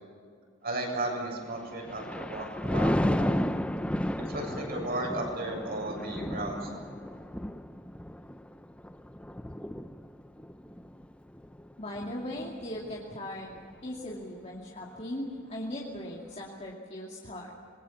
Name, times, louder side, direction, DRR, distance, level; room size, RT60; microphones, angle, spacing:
voice 1, 0.6-3.4 4.2-6.9, right 2 dB, 50° right, 0 dB, 7.2 m, -35 dB
Thunder, 1.5-13.0 13.5-13.8, equal, 5° left, 0.6 m, -33 dB
voice 2, 11.8-13.6 13.8-17.5, left 1 dB, 35° left, -3 dB, 2.5 m, -38 dB
26.5 x 21.5 x 7.3 m, 2.3 s
head